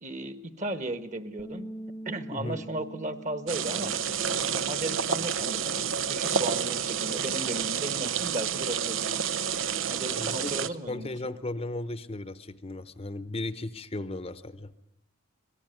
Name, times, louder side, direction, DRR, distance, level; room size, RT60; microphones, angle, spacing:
voice 1, 0.0-1.7 2.0-3.9 4.4-9.0 9.9-11.3, right 1 dB, 35° right, 13 dB, 1.6 m, -35 dB
Bass guitar, 1.4-7.6, right 1 dB, 5° left, 1.0 m, -46 dB
voice 2, 2.3-2.6 10.1-14.7, left 2 dB, 30° left, 14 dB, 0.9 m, -36 dB
sound 1, 3.5-10.7, right 7 dB, 80° right, 1.0 m, -29 dB
25.5 x 18.5 x 9.3 m, 0.81 s
head